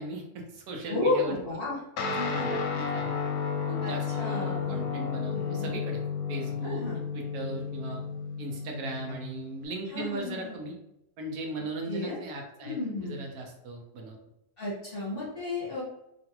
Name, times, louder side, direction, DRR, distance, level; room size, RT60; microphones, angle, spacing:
voice 1, 0.0-1.4 2.2-3.2 3.7-6.0 6.3-8.0 8.4-10.8 11.2-12.8 13.0-14.2, right 2 dB, 75° right, 1 dB, 1.1 m, -38 dB
voice 2, 0.9-1.8 2.1-2.4 3.8-4.8 5.3-5.7 6.6-7.0 9.9-10.5 11.9-12.2 12.6-13.2 14.6-15.8, left 2 dB, 40° left, -7 dB, 1.1 m, -32 dB
Guitar, 2.0-9.7, left 5 dB, 75° left, 1.0 m, -32 dB
3.0 x 2.5 x 2.8 m, 0.83 s
omnidirectional pair, 1.7 m